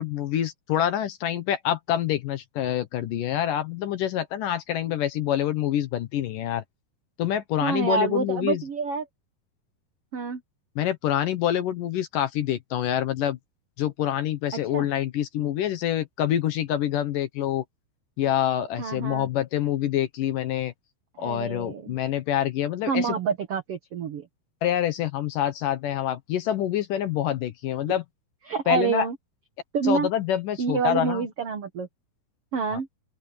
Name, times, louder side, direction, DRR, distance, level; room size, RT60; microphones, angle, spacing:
voice 1, 0.0-6.6 7.2-8.6 10.8-13.4 13.8-17.6 18.2-20.7 21.2-23.2 24.6-28.0 28.7-29.1 29.8-31.3 32.7-32.8, left 11 dB, 65° left, 2.3 m, -26 dB
voice 2, 7.6-9.0 10.1-10.4 14.7-14.9 18.8-19.3 21.2-21.9 22.9-24.3 28.5-29.1 29.7-30.1 30.6-31.9 32.5-32.9, right 6 dB, 75° right, 1.3 m, -27 dB
open air
omnidirectional pair, 4.7 m